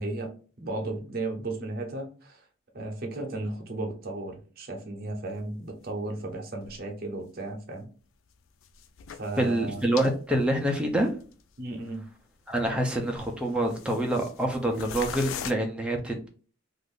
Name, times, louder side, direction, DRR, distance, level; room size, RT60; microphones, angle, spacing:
voice 1, 0.0-2.4 2.7-7.9 9.2-9.9 11.6-12.1, right 2 dB, 50° right, 0.7 m, -35 dB
sound 1, 5.6-5.7 6.6-6.8 7.2-7.3 8.6-10.2 10.4-10.5 11.2-11.3 11.8-11.9 12.5-12.8 13.1-14.5 14.7-15.5, left 8 dB, 80° left, 0.3 m, -40 dB
voice 2, 9.4-11.1 12.5-16.3, right 1 dB, 5° right, 0.4 m, -26 dB
2.5 x 2.5 x 3.5 m
head